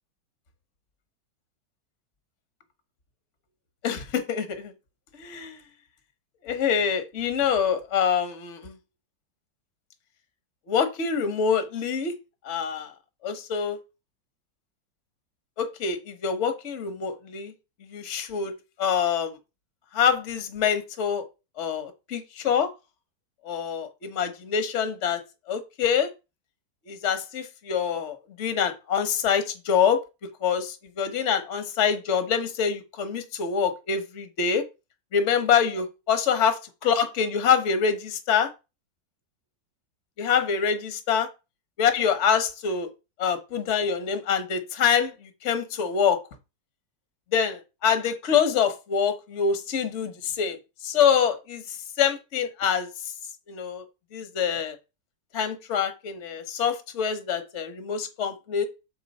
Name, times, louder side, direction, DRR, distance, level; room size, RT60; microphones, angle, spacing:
voice 1, 3.8-4.7 5.1-5.6 6.4-8.7 10.7-12.1 12.4-12.9 13.2-13.8 15.6-17.5 17.9-18.5 18.8-19.3 19.9-21.2 21.6-22.7 23.4-25.2 25.5-26.1 26.9-30.0 30.4-34.6 35.1-38.5 40.2-41.3 41.8-42.9 43.2-46.2 47.3-50.6 50.8-52.9 53.5-53.8 54.1-54.8 55.3-58.7, left 7 dB, 50° left, 1.1 m, -25 dB
6.9 x 3.8 x 5.2 m
omnidirectional pair, 2.0 m